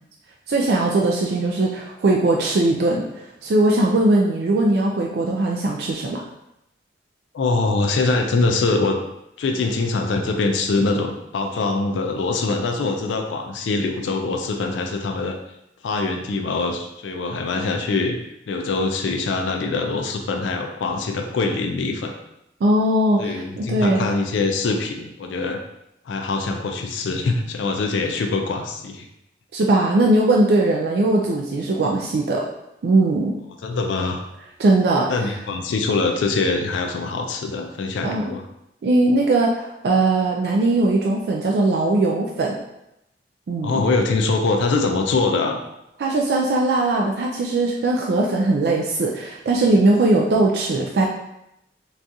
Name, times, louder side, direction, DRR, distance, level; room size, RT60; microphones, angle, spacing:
voice 1, 0.5-3.1 3.4-6.2 22.6-24.1 29.5-32.4 32.8-33.4 34.6-35.1 38.0-38.4 38.8-42.6 43.5-43.8 46.0-51.1, right 2 dB, 60° right, -1 dB, 0.3 m, -19 dB
voice 2, 7.3-9.0 9.4-15.4 15.8-18.2 18.5-22.1 23.2-25.6 26.1-29.1 33.6-34.2 35.1-38.5 43.6-45.6, left 3 dB, 90° left, 3 dB, 0.4 m, -23 dB
3.7 x 2.3 x 2.7 m, 0.84 s
head